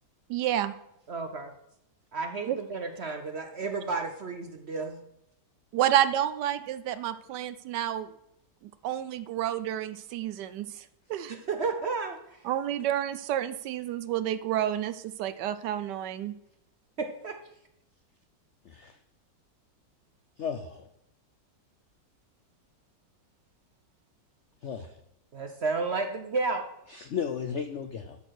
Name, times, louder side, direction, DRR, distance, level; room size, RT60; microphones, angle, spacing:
voice 1, 0.3-0.8 2.4-2.6 5.7-8.1 8.6-11.4 12.4-16.3, right 11 dB, 75° right, 14 dB, 1.1 m, -30 dB
voice 2, 1.1-1.5 2.1-5.0 11.3-12.4 17.0-17.4 25.3-26.7, right 4 dB, 55° right, 5 dB, 0.7 m, -32 dB
voice 3, 18.6-19.0 20.4-20.9 24.6-24.9 26.9-28.2, left 7 dB, 80° left, 8 dB, 0.6 m, -34 dB
12.5 x 4.5 x 6.4 m, 0.80 s
omnidirectional pair, 2.0 m